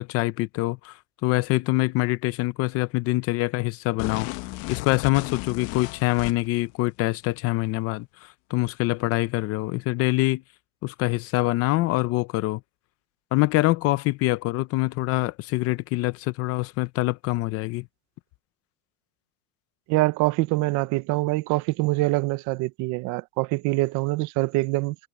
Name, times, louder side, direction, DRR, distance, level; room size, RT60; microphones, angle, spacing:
voice 1, 0.0-4.3 4.7-10.4 10.8-12.6 13.3-17.9, left 19 dB, 35° left, 0.5 m, -25 dB
sound 1, 4.0-6.6, left 21 dB, 55° left, 1.0 m, -34 dB
voice 2, 19.9-25.0, right 20 dB, 45° right, 0.8 m, -24 dB
cardioid pair, 160°, 39 cm